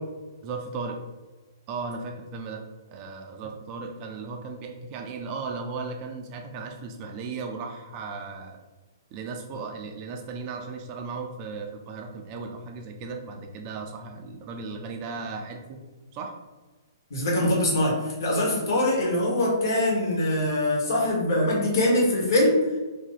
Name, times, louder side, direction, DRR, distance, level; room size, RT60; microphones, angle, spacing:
voice 1, 0.4-1.0 1.7-8.6 9.1-15.8 16.1-16.4, right 4 dB, 35° right, 3 dB, 0.4 m, -36 dB
voice 2, 17.1-22.6, left 1 dB, 60° left, -3 dB, 1.4 m, -23 dB
2.8 x 2.7 x 3.9 m, 1.2 s
hypercardioid pair, 130°, 2 cm